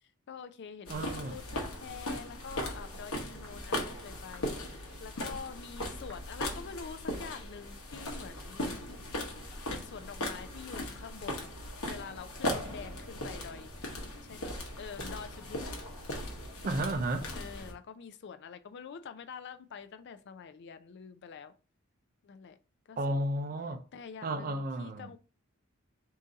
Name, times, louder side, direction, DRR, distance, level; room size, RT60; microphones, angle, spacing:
voice 1, 0.3-9.0 9.3-11.5 11.8-13.7 14.2-15.7 17.3-21.5 22.2-22.6 22.9-23.2 23.9-25.2, left 6 dB, 55° left, 0.4 m, -46 dB
sound 1, 0.9-17.7, left 1 dB, 85° left, 1.0 m, -38 dB
voice 2, 0.9-1.4 16.6-17.3 23.0-23.8 24.2-25.1, right 1 dB, 40° right, 0.4 m, -33 dB
sound 2, 1.6-1.9 2.5-2.7 3.4-3.6 4.3-4.6 5.2-5.3 6.1-6.3, left 1 dB, 10° left, 0.8 m, -56 dB
3.7 x 2.7 x 3.8 m
head